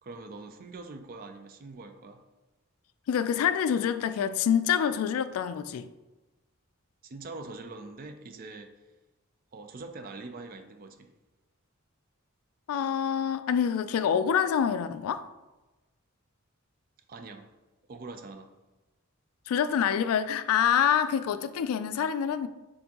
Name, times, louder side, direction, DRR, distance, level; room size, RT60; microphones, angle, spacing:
voice 1, 0.0-2.2 7.0-8.7 9.5-11.1 17.1-17.5 17.9-18.5, right 3 dB, 40° right, 0.4 m, -43 dB
voice 2, 3.1-5.9 12.7-15.3 19.5-22.5, left 8 dB, 80° left, 0.3 m, -26 dB
4.4 x 3.7 x 2.8 m
head